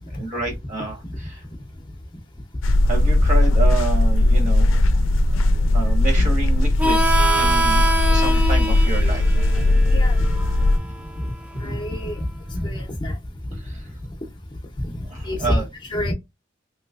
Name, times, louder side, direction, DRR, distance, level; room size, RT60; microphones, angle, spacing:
voice 1, 0.1-1.4 2.8-4.8 5.7-9.2 9.6-9.7 13.6-13.9 15.1-15.6, right 3 dB, 40° right, 1.2 m, -29 dB
sound 1, 2.6-10.8, left 1 dB, 75° left, 0.4 m, -18 dB
Harmonica, 6.8-12.1, right 1 dB, 5° right, 0.4 m, -25 dB
voice 2, 9.9-10.2 11.6-12.3 12.5-13.2 14.8-14.9 15.2-16.1, left 1 dB, 25° left, 0.7 m, -26 dB
3.1 x 3.0 x 2.4 m
head